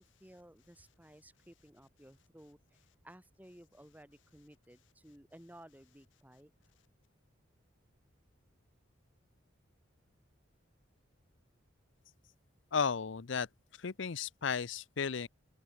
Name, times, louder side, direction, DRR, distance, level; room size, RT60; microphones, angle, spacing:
voice 1, 0.0-6.5, right 1 dB, 10° right, 1.9 m, -57 dB
voice 2, 12.7-13.5 13.8-15.3, left 6 dB, 70° left, 0.6 m, -34 dB
open air
head